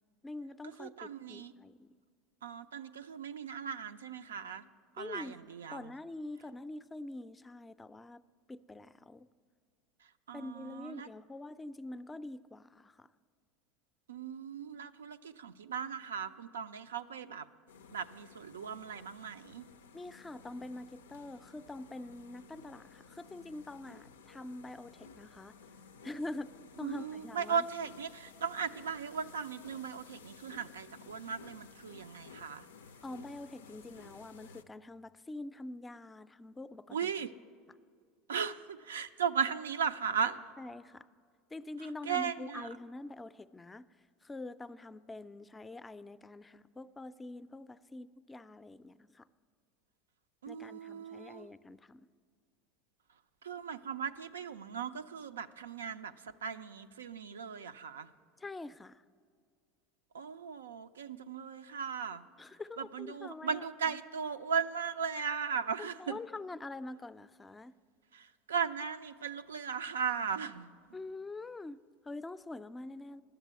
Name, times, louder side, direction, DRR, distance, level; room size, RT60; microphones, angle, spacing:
voice 1, 0.2-1.9 5.0-8.2 8.5-9.3 10.3-13.1 19.9-25.5 26.0-26.5 26.8-27.7 33.0-37.3 40.6-41.1 41.5-43.9 44.2-49.3 50.5-52.1 58.4-59.0 62.4-64.0 65.8-67.7 70.9-73.2, left 2 dB, 15° left, 15 dB, 0.4 m, -45 dB
voice 2, 0.8-1.5 2.4-4.6 5.0-5.9 10.3-11.1 14.1-17.5 17.9-19.6 26.8-32.7 36.9-37.3 38.3-40.4 42.1-42.7 50.4-51.5 53.4-58.1 60.1-62.2 62.8-66.2 68.1-70.7, right 6 dB, 90° right, 9 dB, 0.4 m, -37 dB
sound 1, 17.7-34.6, left 5 dB, 85° left, 0.4 m, -55 dB
11.0 x 7.3 x 8.2 m, 2.1 s
hypercardioid pair, 85°, 0 cm